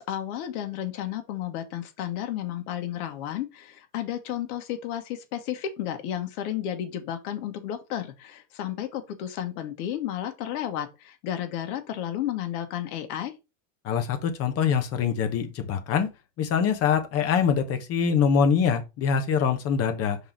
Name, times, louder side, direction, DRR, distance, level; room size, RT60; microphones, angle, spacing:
voice 1, 0.0-13.3, left 11 dB, 60° left, 1.6 m, -32 dB
voice 2, 13.8-16.1 16.4-20.2, left 7 dB, 30° left, 1.0 m, -24 dB
5.4 x 4.1 x 4.4 m
supercardioid pair, 160°, 49 cm